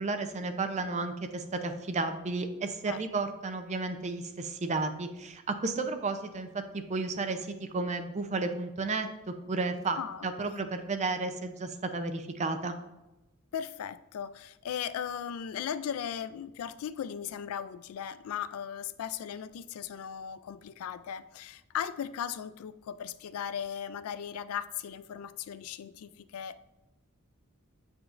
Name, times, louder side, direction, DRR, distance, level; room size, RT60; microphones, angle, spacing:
voice 1, 0.0-6.5 6.7-10.0 10.2-12.8, right 3 dB, 35° right, 8 dB, 0.5 m, -33 dB
voice 2, 9.9-10.6 13.5-26.6, left 8 dB, 80° left, 15 dB, 0.3 m, -37 dB
8.0 x 5.0 x 2.5 m, 1.0 s
head